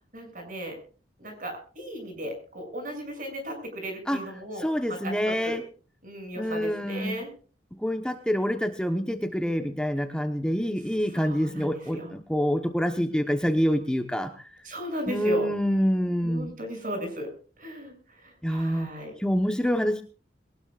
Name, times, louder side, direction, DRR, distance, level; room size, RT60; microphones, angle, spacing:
voice 1, 0.1-0.8 1.2-5.6 6.0-7.3 11.1-12.1 14.6-15.5 16.2-17.3 17.6-19.1, equal, 50° right, 5 dB, 7.3 m, -36 dB
voice 2, 4.6-5.6 6.4-7.1 7.8-14.3 15.1-16.5 18.4-18.9 19.2-20.0, equal, 5° left, 5 dB, 1.0 m, -26 dB
22.5 x 19.0 x 2.5 m, 0.39 s
head